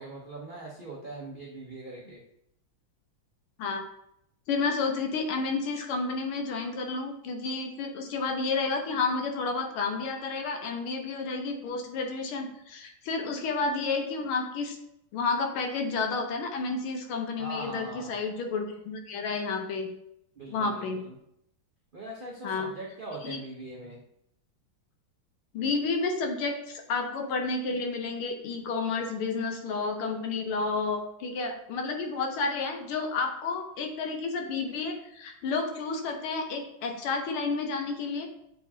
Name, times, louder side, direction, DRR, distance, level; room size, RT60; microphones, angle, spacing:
voice 1, 0.0-2.2 17.4-18.2 20.4-21.1 21.9-24.0, right 2 dB, 75° right, -4 dB, 0.4 m, -41 dB
voice 2, 4.5-14.8 15.1-19.9 20.5-21.0 22.4-22.7 23.2-23.4 25.5-38.3, left 4 dB, 85° left, 4 dB, 1.7 m, -31 dB
7.7 x 4.8 x 2.7 m, 0.78 s
omnidirectional pair, 2.3 m